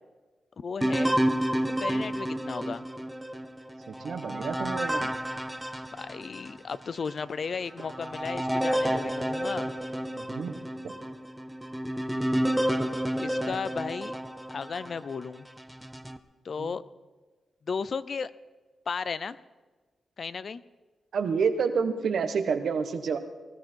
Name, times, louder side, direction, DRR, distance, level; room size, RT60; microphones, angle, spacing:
voice 1, 0.6-1.2 1.7-2.9 6.0-9.7 13.2-14.1 14.5-15.5 16.4-16.8 17.7-18.3 18.9-19.4 20.2-20.6, left 5 dB, 55° left, 16 dB, 0.6 m, -34 dB
sound 1, 0.8-6.6 7.1-7.2 7.8-15.0 15.6-16.2, right 1 dB, 5° right, 0.9 m, -30 dB
voice 2, 3.9-5.1 10.1-10.6 10.8-10.9 16.6-16.7 21.1-23.2, right 5 dB, 75° right, 8 dB, 1.3 m, -29 dB
19.5 x 14.0 x 4.6 m, 1.3 s
cardioid pair, 95°, 0 cm